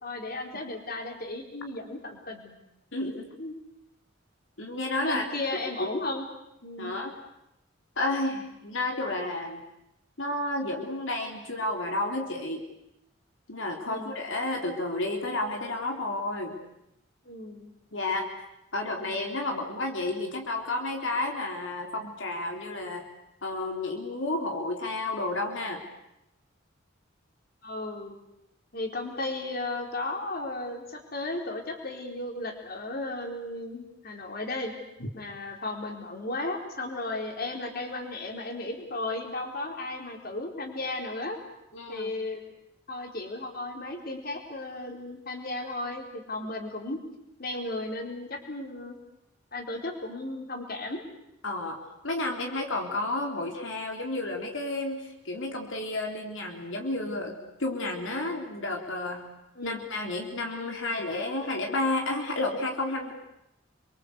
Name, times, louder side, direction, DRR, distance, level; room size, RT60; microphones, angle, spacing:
voice 1, 0.0-2.6 3.4-3.6 5.0-6.2 6.6-6.9 13.9-14.2 17.2-17.7 18.9-19.1 27.6-28.2 28.7-34.7 35.1-41.4 41.9-42.4 42.9-47.0 47.4-49.0 49.5-51.0 59.6-59.8, left 2 dB, 50° left, 3 dB, 4.3 m, -35 dB
voice 2, 2.9-3.3 4.6-5.2 5.8-5.9 6.8-7.1 8.0-9.6 10.2-12.6 13.5-16.6 17.9-18.3 18.7-23.1 23.4-25.8 35.0-35.1 41.7-42.1 51.4-51.8 52.0-59.2 59.6-63.1, left 2 dB, 80° left, 2 dB, 3.6 m, -31 dB
29.5 x 23.5 x 8.2 m, 0.85 s
head